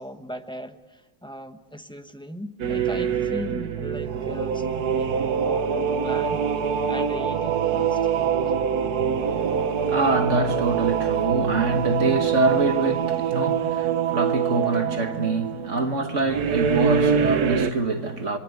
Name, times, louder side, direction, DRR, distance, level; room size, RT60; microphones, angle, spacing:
voice 1, 0.0-8.0 8.5-8.6, equal, 5° left, 0.8 m, -38 dB
sound 1, 2.6-17.7, right 7 dB, 60° right, 1.5 m, -24 dB
voice 2, 9.2-18.4, right 3 dB, 45° right, 1.8 m, -25 dB
26.5 x 22.0 x 8.3 m
omnidirectional pair, 2.0 m